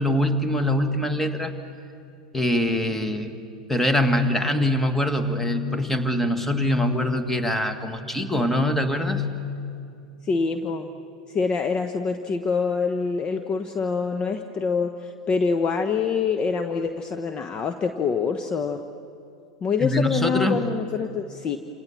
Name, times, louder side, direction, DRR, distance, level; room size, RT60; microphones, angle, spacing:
voice 1, 0.0-1.5 2.3-3.3 3.7-9.2 19.8-20.7, left 1 dB, 5° left, 8 dB, 2.0 m, -23 dB
voice 2, 10.2-10.9 11.3-18.8 19.6-21.6, left 5 dB, 25° left, 7 dB, 1.1 m, -25 dB
28.0 x 27.5 x 7.4 m, 2.6 s
figure-of-eight pair, 90°, 4 cm